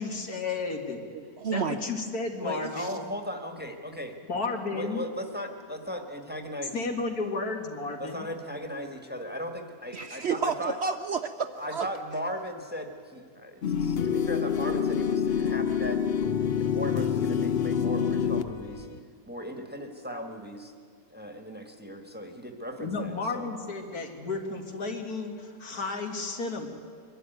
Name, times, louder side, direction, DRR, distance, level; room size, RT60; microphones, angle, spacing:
voice 1, 0.0-1.0 1.5-3.0 4.3-5.0 6.7-8.3 18.3-18.5 22.8-26.7, left 3 dB, 80° left, 3 dB, 2.4 m, -33 dB
voice 2, 1.1-1.8 2.6-2.9 9.9-11.9, right 5 dB, 60° right, 8 dB, 0.8 m, -31 dB
voice 3, 2.3-4.2 4.7-6.7 8.0-10.7 11.6-16.0 16.5-18.9 19.3-20.7 21.1-23.5, equal, 5° right, 4 dB, 1.4 m, -37 dB
sound 1, 13.6-19.0, left 7 dB, 55° left, 0.7 m, -27 dB
23.0 x 12.5 x 9.2 m, 2.2 s
omnidirectional pair, 1.6 m